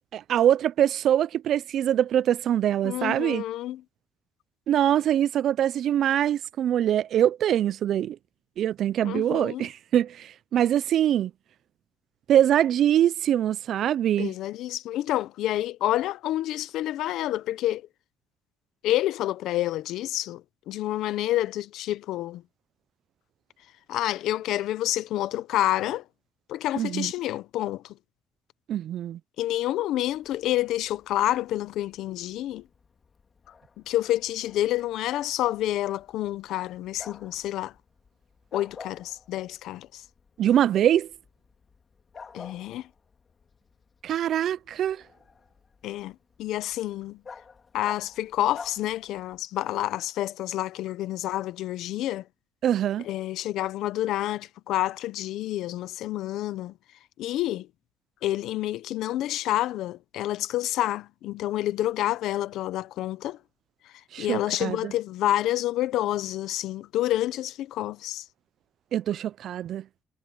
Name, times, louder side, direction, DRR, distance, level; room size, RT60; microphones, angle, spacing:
voice 1, 0.1-3.4 4.7-8.2 8.6-11.3 12.3-14.3 26.8-27.1 28.7-29.2 40.4-41.1 44.0-45.0 52.6-53.1 64.1-64.9 68.9-69.8, right 11 dB, 70° right, 0.3 m, -23 dB
voice 2, 2.8-3.8 9.0-9.7 14.2-17.9 18.8-22.4 23.9-26.1 26.5-28.0 29.4-32.7 33.9-37.7 38.5-40.0 42.3-42.9 45.8-47.2 47.7-52.3 53.0-56.7 57.2-57.7 58.2-63.4 63.8-68.3, left 14 dB, 85° left, 0.7 m, -28 dB
Bark, 30.1-49.5, left 5 dB, 40° left, 1.9 m, -50 dB
cardioid pair, 90°, 0 cm